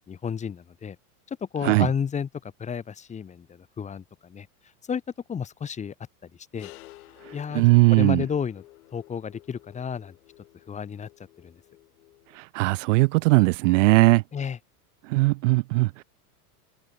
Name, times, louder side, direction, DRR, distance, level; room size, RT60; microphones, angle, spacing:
voice 1, 0.1-1.0 1.3-4.5 4.9-5.0 5.3-5.9 6.2-6.7 7.3-7.6 7.9-8.6 8.9-10.1 10.7-11.1 11.4-11.6 14.3-14.6, left 7 dB, 15° left, 2.8 m, -32 dB
sound 1, 6.6-12.4, left 18 dB, 65° left, 4.1 m, -51 dB
voice 2, 7.2-8.2 12.3-14.2 15.0-16.0, right 23 dB, 50° right, 1.1 m, -19 dB
open air
supercardioid pair, 160°, 46 cm